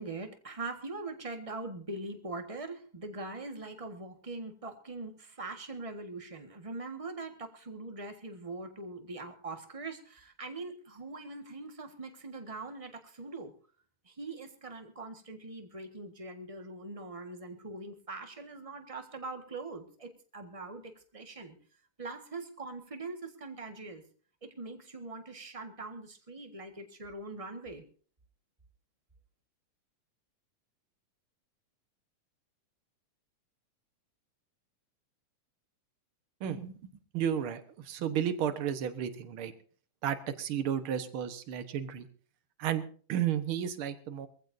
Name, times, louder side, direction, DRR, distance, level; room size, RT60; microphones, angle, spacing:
voice 1, 0.0-13.5 14.0-21.5 22.0-24.0 24.4-27.8, right 3 dB, 35° right, 5 dB, 0.5 m, -42 dB
voice 2, 36.4-36.8 37.1-39.5 40.0-42.1 42.6-42.8 43.1-44.3, right 9 dB, 55° right, 9 dB, 1.7 m, -32 dB
22.5 x 15.5 x 2.7 m, 0.41 s
omnidirectional pair, 3.6 m